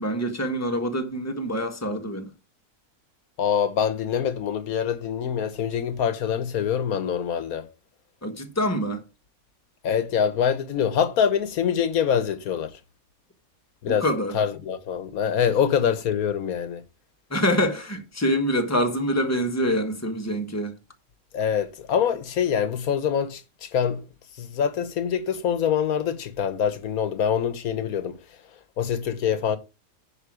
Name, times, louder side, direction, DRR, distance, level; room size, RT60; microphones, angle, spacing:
voice 1, 0.0-2.3 8.2-9.0 13.9-14.4 17.3-20.7, equal, 10° left, 1.3 m, -25 dB
voice 2, 3.4-7.7 9.8-12.8 13.8-14.1 14.3-16.8 21.3-24.1 24.4-28.2 28.8-29.6, left 8 dB, 85° left, 1.4 m, -25 dB
10.0 x 5.3 x 4.9 m
omnidirectional pair, 1.5 m